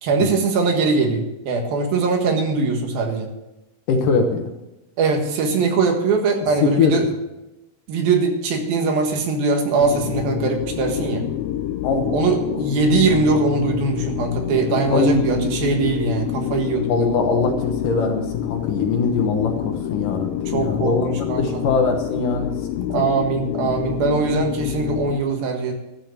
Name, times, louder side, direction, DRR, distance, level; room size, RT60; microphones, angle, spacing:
voice 1, 0.0-3.3 5.0-7.1 7.9-11.3 12.1-17.1 20.5-21.6 22.9-25.7, right 4 dB, 70° right, 3 dB, 3.3 m, -21 dB
voice 2, 3.9-4.5 6.6-6.9 11.8-12.2 14.9-15.7 16.9-21.1 21.4-22.5 22.8-23.0, left 4 dB, 65° left, 4 dB, 2.5 m, -21 dB
sound 1, 9.8-25.2, left 12 dB, 80° left, 2.3 m, -27 dB
13.0 x 7.7 x 8.2 m, 0.97 s
omnidirectional pair, 4.6 m